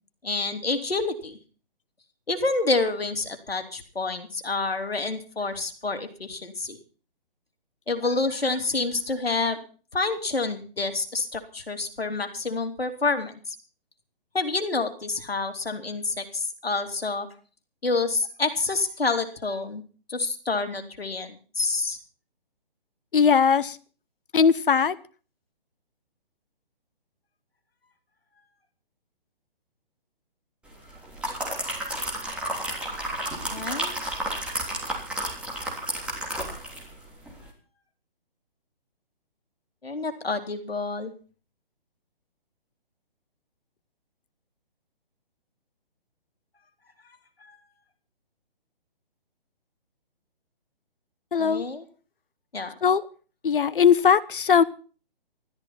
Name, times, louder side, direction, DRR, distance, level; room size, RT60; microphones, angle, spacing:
voice 1, 0.2-1.4 2.3-6.8 7.9-9.6 9.9-13.5 14.3-17.3 17.8-19.8 20.1-22.0 33.5-34.0 39.8-41.1 51.4-51.8 52.5-52.7, left 3 dB, 85° left, 6 dB, 3.1 m, -28 dB
voice 2, 23.1-23.8 24.3-25.0 51.3-51.6 52.8-53.1 53.4-54.6, left 7 dB, 60° left, 16 dB, 1.1 m, -19 dB
sound 1, 30.9-36.9 37.3-37.4, right 1 dB, 5° right, 3.4 m, -31 dB
14.5 x 13.5 x 5.8 m, 0.39 s
figure-of-eight pair, 140°, 30 cm